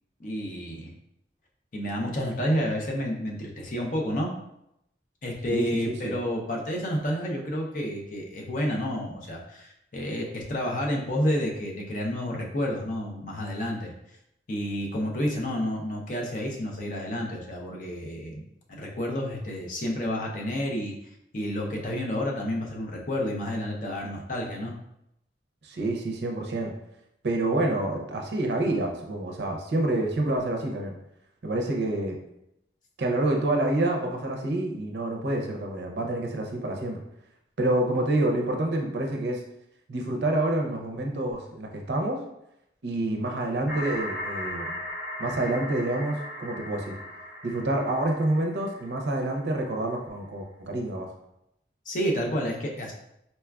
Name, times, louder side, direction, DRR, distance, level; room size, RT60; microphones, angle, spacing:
voice 1, 0.2-0.9 1.7-4.3 5.2-13.9 14.5-18.4 18.7-20.9 21.3-24.7 51.9-52.9, equal, 45° left, -1 dB, 0.5 m, -30 dB
voice 2, 5.5-6.1 25.6-26.7 27.2-31.0 31.4-32.2 33.0-37.0 37.6-39.4 39.9-42.2 42.8-44.8 45.2-47.0 47.4-51.1, right 1 dB, 70° right, 1 dB, 0.5 m, -27 dB
sound 1, 43.7-49.4, left 1 dB, ahead, 0.9 m, -37 dB
4.1 x 2.3 x 2.3 m, 0.82 s
head